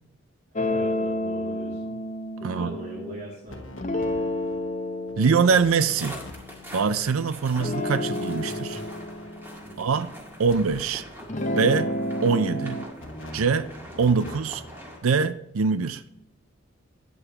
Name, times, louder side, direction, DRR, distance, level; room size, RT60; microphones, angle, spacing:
sound 1, 0.6-3.2 3.8-7.2 7.6-10.8 11.2-12.9, left 1 dB, 35° left, 0.7 m, -31 dB
voice 1, 0.7-2.0 2.4-3.7 9.6-9.9, equal, 45° right, 2.5 m, -40 dB
voice 2, 2.4-2.7 5.2-6.2 6.7-8.8 9.8-10.1 10.4-11.0 11.5-11.9 12.2-12.8 13.3-13.7 14.0-14.6 15.0-16.0, right 5 dB, 85° right, 0.5 m, -23 dB
sound 2, 3.5-4.7 5.1-5.2 5.5-6.3 6.6-6.9 8.3-9.4 10.4-11.4 13.0-14.9, left 1 dB, 70° left, 1.3 m, -44 dB
sound 3, 5.8-15.0, equal, 10° right, 1.9 m, -44 dB
12.5 x 8.7 x 2.9 m
head